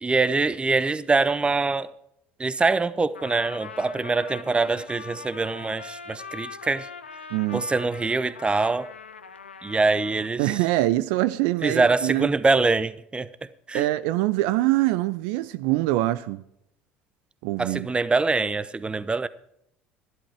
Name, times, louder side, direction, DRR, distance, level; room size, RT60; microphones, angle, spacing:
voice 1, 0.0-1.9 2.4-6.9 7.5-8.9 9.6-10.6 11.6-13.3 13.7-13.9 17.6-19.3, right 3 dB, 20° right, 0.8 m, -24 dB
Trumpet, 3.1-10.4, left 5 dB, 90° left, 0.7 m, -41 dB
voice 2, 7.3-7.6 10.4-12.3 13.7-16.4 17.4-17.9, right 17 dB, 65° right, 0.5 m, -24 dB
12.5 x 11.5 x 4.8 m
figure-of-eight pair, 60°, 6 cm